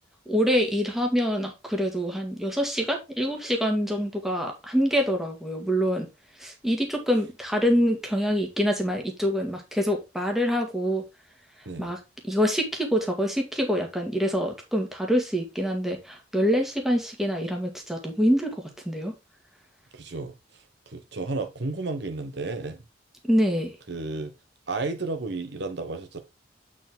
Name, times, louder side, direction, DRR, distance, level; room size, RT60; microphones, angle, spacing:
voice 1, 0.3-6.1 6.4-11.0 11.8-12.0 12.3-18.5 18.9-19.1 23.2-23.7, equal, ahead, 1.8 m, -25 dB
voice 2, 19.9-22.8 23.9-24.3 24.7-26.2, right 3 dB, 60° right, 1.1 m, -32 dB
8.0 x 4.8 x 3.7 m
head